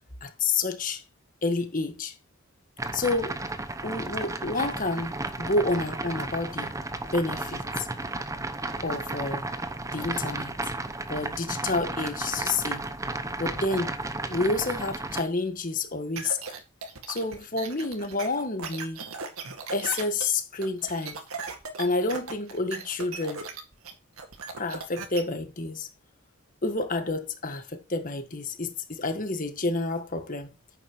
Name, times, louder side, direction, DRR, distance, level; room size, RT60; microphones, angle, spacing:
voice 1, 0.2-1.0 1.4-2.1 2.9-3.4 3.8-6.7 7.1-7.9 8.8-9.5 9.9-10.6 11.1-12.9 13.4-13.9 14.3-16.4 17.1-19.0 19.7-21.2 21.8-23.5 24.6-25.9 26.6-30.5, left 3 dB, 40° left, 1.7 m, -29 dB
sound 1, 2.8-15.2, right 2 dB, 15° right, 0.8 m, -33 dB
sound 2, 16.2-25.2, right 4 dB, 80° right, 2.1 m, -37 dB
10.5 x 8.9 x 3.1 m
head